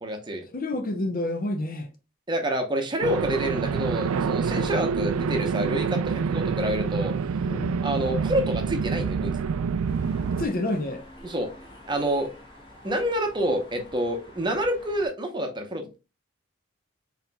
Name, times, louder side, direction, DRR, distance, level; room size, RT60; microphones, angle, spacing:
voice 1, 0.0-0.4 2.3-7.1 7.8-9.5 11.2-11.5 11.9-12.3 12.8-16.0, equal, 20° right, 0.8 m, -28 dB
voice 2, 0.5-1.9 7.5-7.9 10.4-11.0, left 1 dB, 45° left, 0.7 m, -29 dB
sound 1, 3.0-10.5, right 6 dB, 90° right, 0.3 m, -27 dB
sound 2, 9.9-15.1, left 1 dB, 25° left, 1.3 m, -48 dB
4.3 x 4.1 x 2.2 m
head